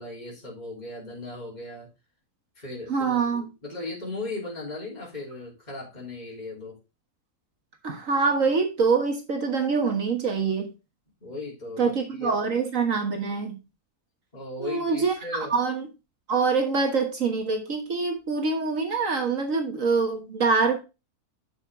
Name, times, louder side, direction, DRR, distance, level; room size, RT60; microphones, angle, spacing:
voice 1, 0.0-1.9 2.6-6.8 11.2-12.3 14.3-15.5, left 2 dB, 25° left, 3.6 m, -37 dB
voice 2, 2.9-3.4 7.8-10.7 11.8-13.6 14.6-15.9 16.3-20.8, right 4 dB, 60° right, 1.7 m, -25 dB
8.7 x 6.2 x 3.6 m
omnidirectional pair, 1.6 m